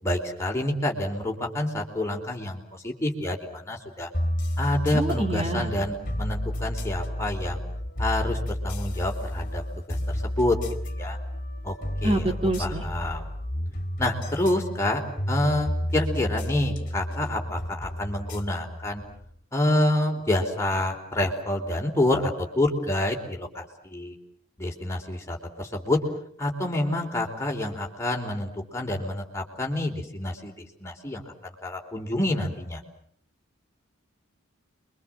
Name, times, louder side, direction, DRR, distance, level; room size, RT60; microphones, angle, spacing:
voice 1, 0.0-4.1 4.6-7.6 8.0-9.6 9.9-10.6 10.8-11.2 11.6-11.7 12.0-12.3 12.6-13.3 14.0-15.0 15.3-19.0 19.5-24.1 24.6-26.0 26.4-31.2 31.6-32.8, left 1 dB, 15° left, 1 dB, 4.0 m, -28 dB
sound 1, 4.1-19.4, equal, 40° left, 2.6 m, -31 dB
voice 2, 4.9-5.7 12.0-12.8, right 1 dB, 30° right, 4 dB, 2.2 m, -26 dB
29.0 x 24.0 x 7.7 m, 0.65 s
head